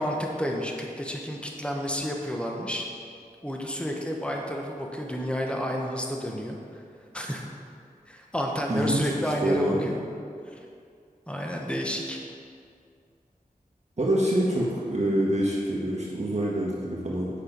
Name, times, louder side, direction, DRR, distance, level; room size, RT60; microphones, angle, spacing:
voice 1, 0.0-2.9 3.4-6.6 7.1-7.4 8.1-9.9 10.5-10.6 11.3-12.2, equal, 5° left, 0 dB, 1.1 m, -30 dB
voice 2, 8.7-9.9 14.0-17.3, right 1 dB, 50° right, -5 dB, 1.6 m, -26 dB
8.5 x 6.0 x 5.2 m, 2.4 s
wide cardioid pair, 55°, 15 cm